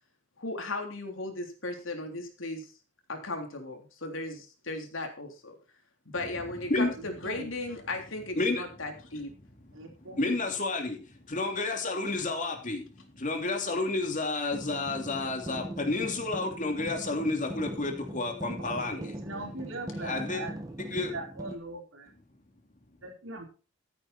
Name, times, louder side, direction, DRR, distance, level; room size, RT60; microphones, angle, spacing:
voice 1, 0.4-2.7 3.1-5.5 6.0-9.3, left 2 dB, 80° left, 3 dB, 3.4 m, -36 dB
voice 2, 6.7-7.5 9.7-10.4 18.6-20.5 20.9-22.1 23.0-23.4, right 2 dB, 80° right, 1 dB, 4.3 m, -41 dB
voice 3, 9.9-12.9 13.1-19.1 20.0-20.4 20.9-21.1, left 2 dB, 40° left, 3 dB, 2.9 m, -30 dB
sound 1, 14.5-21.5, right 1 dB, 20° right, 1.7 m, -41 dB
14.0 x 9.1 x 4.3 m, 0.35 s
head